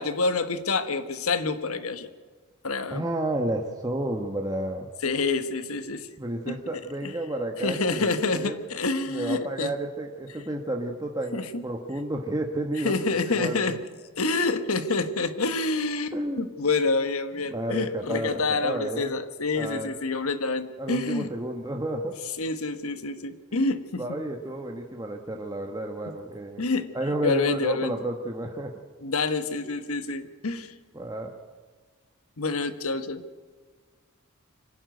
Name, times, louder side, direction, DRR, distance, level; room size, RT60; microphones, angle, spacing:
voice 1, 0.0-2.1 2.6-3.0 5.0-6.1 6.5-7.1 7.6-9.7 11.3-11.6 12.8-13.8 14.2-21.3 22.4-24.2 26.6-26.9 27.2-27.9 29.0-30.7 32.4-33.2, left 3 dB, 85° left, 11 dB, 1.4 m, -27 dB
voice 2, 2.9-4.9 6.2-8.1 8.3-8.6 9.1-11.4 11.6-13.8 16.1-16.5 17.5-19.1 19.6-19.9 20.8-22.1 24.0-26.6 26.9-28.7 30.9-31.4, right 1 dB, 20° right, 2 dB, 1.2 m, -31 dB
25.0 x 11.5 x 9.4 m, 1.5 s
head